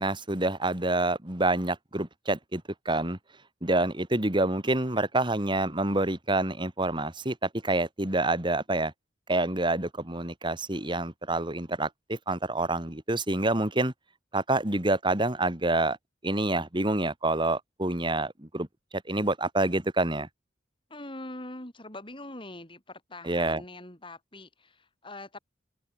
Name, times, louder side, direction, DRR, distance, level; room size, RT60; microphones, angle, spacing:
voice 1, 0.0-3.2 3.6-8.9 9.3-13.9 14.3-16.0 16.2-18.7 18.9-20.3 23.3-23.6, right 2 dB, 25° right, 2.8 m, -27 dB
voice 2, 20.9-25.4, left 2 dB, 30° left, 6.3 m, -43 dB
open air
head